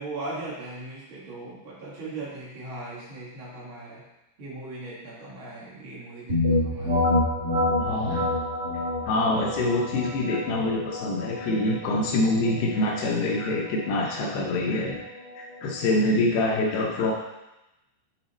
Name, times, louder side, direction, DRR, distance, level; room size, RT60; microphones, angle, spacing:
voice 1, 0.0-4.0 4.4-7.0, right 2 dB, 85° right, -8 dB, 1.1 m, -38 dB
sound 1, 6.3-15.9, left 2 dB, 60° right, 0.7 m, -28 dB
voice 2, 7.8-8.3 9.1-15.0 15.4-17.1, left 2 dB, 80° left, -1 dB, 2.5 m, -25 dB
7.6 x 4.0 x 4.1 m, 0.96 s
omnidirectional pair, 5.2 m